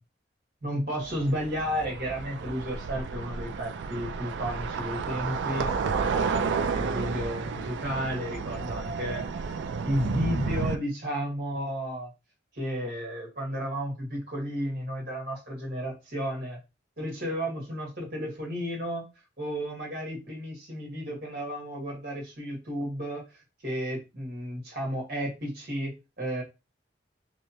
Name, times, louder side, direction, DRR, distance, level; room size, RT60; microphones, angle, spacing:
voice 1, 0.6-9.6 9.8-12.1 12.5-16.6 17.0-19.1 19.4-23.2 23.6-26.4, equal, 50° right, -2 dB, 1.6 m, -33 dB
sound 1, 0.9-10.8, right 5 dB, 70° right, 0.3 m, -31 dB
3.1 x 2.8 x 2.8 m, 0.26 s
head